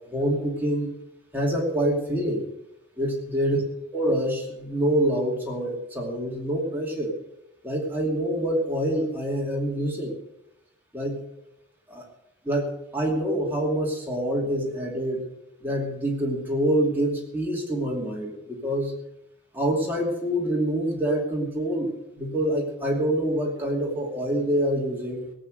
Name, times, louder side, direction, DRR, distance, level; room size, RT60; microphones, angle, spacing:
voice 1, 0.1-0.9 1.3-2.4 3.0-3.6 3.9-7.1 7.6-10.1 10.9-11.2 11.9-12.0 12.4-15.3 15.6-18.9 19.5-25.3, right 1 dB, 10° right, -2 dB, 2.6 m, -26 dB
18.0 x 8.4 x 6.6 m, 0.83 s
head